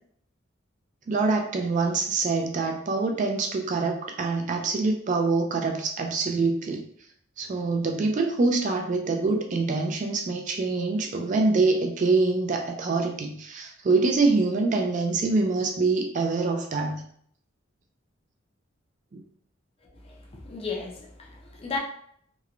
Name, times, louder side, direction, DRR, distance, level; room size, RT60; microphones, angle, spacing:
voice 1, 1.1-6.8 7.4-17.0 19.1-19.2, right 3 dB, 40° right, 3 dB, 0.3 m, -25 dB
voice 2, 20.0-21.8, left 4 dB, 30° left, -1 dB, 0.5 m, -35 dB
3.0 x 2.1 x 2.4 m, 0.64 s
head